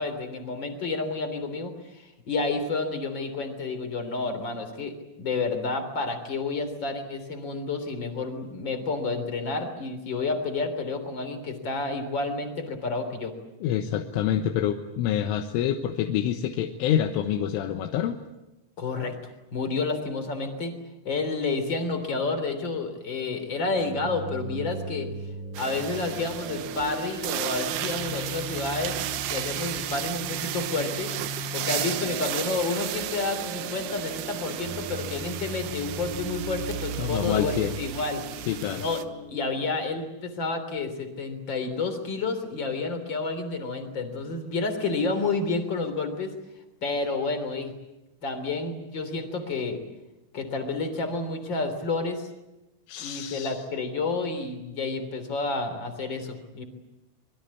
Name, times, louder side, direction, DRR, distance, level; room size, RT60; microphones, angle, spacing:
voice 1, 0.0-13.3 18.8-20.7 21.0-25.2 25.6-29.0 29.3-31.1 31.5-38.2 38.8-39.0 39.3-46.3 46.8-47.7 48.2-49.8 50.3-52.3 53.0-56.6, left 3 dB, 25° left, 8 dB, 3.2 m, -30 dB
voice 2, 13.6-18.2 37.0-37.8 38.5-38.9 52.9-53.6, left 10 dB, 80° left, 4 dB, 3.6 m, -27 dB
sound 1, 23.6-39.7, right 2 dB, 60° right, 9.9 m, -38 dB
sound 2, 25.5-39.0, right 12 dB, 80° right, 3.6 m, -34 dB
26.0 x 22.5 x 8.5 m, 0.96 s
omnidirectional pair, 5.8 m